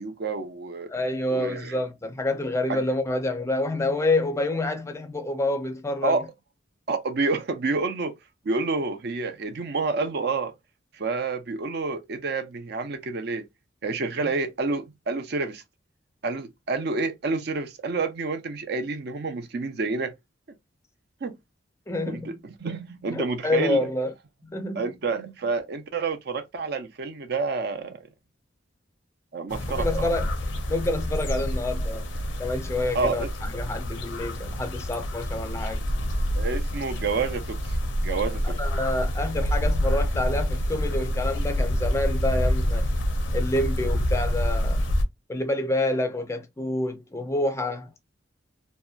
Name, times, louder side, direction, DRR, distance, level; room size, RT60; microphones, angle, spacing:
voice 1, 0.0-0.9 1.3-1.8 2.7-2.8 6.0-6.3 6.9-8.2 8.4-10.5 10.9-13.5 13.8-15.6 16.2-20.1 21.2-21.4 22.1-23.9 24.8-28.0 29.3-30.1 32.9-33.3 36.3-37.8 38.0-38.6, right 3 dB, 60° right, 0.5 m, -29 dB
voice 2, 0.9-6.2 14.2-14.3 21.9-22.4 23.1-24.1 24.4-24.9 29.7-30.3 30.7-32.1 32.4-35.8 38.4-42.9 43.3-45.0 45.3-48.0, left 2 dB, 15° left, 0.4 m, -28 dB
sound 1, 29.5-45.0, equal, 85° left, 0.5 m, -27 dB
2.7 x 2.1 x 2.3 m
head